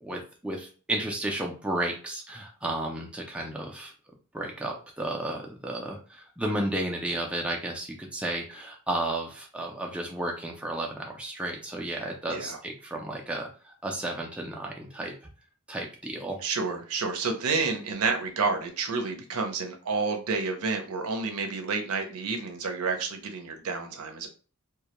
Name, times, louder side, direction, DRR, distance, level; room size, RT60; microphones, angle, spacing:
voice 1, 0.0-3.9 4.3-15.1 15.7-16.4, right 1 dB, 5° right, 0 dB, 0.3 m, -33 dB
voice 2, 16.4-24.3, right 4 dB, 80° right, 4 dB, 0.5 m, -29 dB
2.2 x 2.1 x 2.8 m, 0.38 s
head